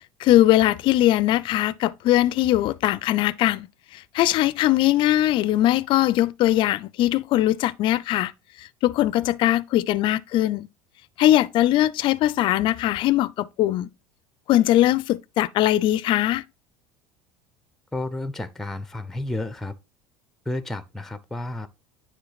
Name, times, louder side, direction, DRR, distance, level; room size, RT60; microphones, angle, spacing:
voice 1, 0.2-3.7 3.9-8.3 8.6-10.7 11.2-13.9 14.5-16.4, left 14 dB, 50° left, 0.4 m, -21 dB
voice 2, 17.9-19.7 20.5-21.7, left 2 dB, 5° left, 0.6 m, -31 dB
9.6 x 3.2 x 4.0 m
hypercardioid pair, 85°, 11 cm